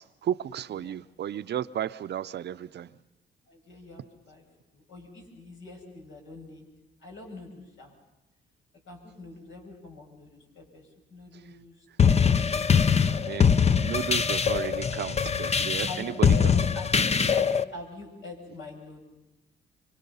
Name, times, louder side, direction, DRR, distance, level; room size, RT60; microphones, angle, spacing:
voice 1, 0.0-2.9 13.1-16.5 16.9-17.0, right 10 dB, 60° right, 0.7 m, -34 dB
voice 2, 3.5-4.4 4.7-6.6 7.0-7.9 8.9-13.1 15.8-19.1, left 3 dB, 75° left, 6.9 m, -44 dB
sound 1, 12.0-17.6, left 6 dB, 35° left, 0.7 m, -22 dB
26.5 x 23.5 x 5.6 m
cardioid pair, 90°, 20 cm